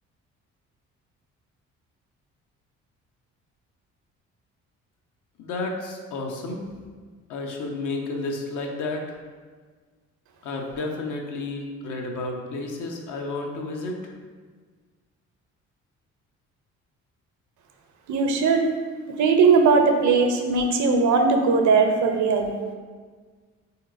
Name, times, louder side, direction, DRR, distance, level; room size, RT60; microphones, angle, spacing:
voice 1, 5.4-6.7 7.3-9.0 10.4-14.0, left 2 dB, 60° left, 1 dB, 0.6 m, -31 dB
voice 2, 18.1-18.6 19.1-22.5, right 4 dB, 55° right, 4 dB, 0.5 m, -19 dB
3.6 x 2.8 x 2.4 m, 1.5 s
hypercardioid pair, 50°, 35 cm